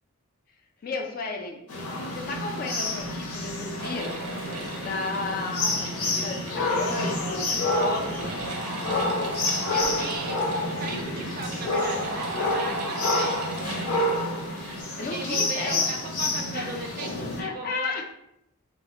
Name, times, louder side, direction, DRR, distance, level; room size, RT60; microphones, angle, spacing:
voice 1, 0.8-1.6 2.1-4.2 4.8-7.4 7.8-8.3 14.5-15.8 16.5-16.8 17.4-18.0, left 4 dB, 40° left, 3 dB, 0.3 m, -33 dB
sound 1, 1.7-17.4, left 2 dB, 80° left, 0.7 m, -29 dB
sound 2, 3.8-14.8, right 2 dB, 90° right, 0.5 m, -36 dB
voice 2, 9.7-14.1 15.1-18.0, right 3 dB, 40° right, 3 dB, 0.3 m, -37 dB
2.1 x 2.0 x 3.6 m, 0.81 s
head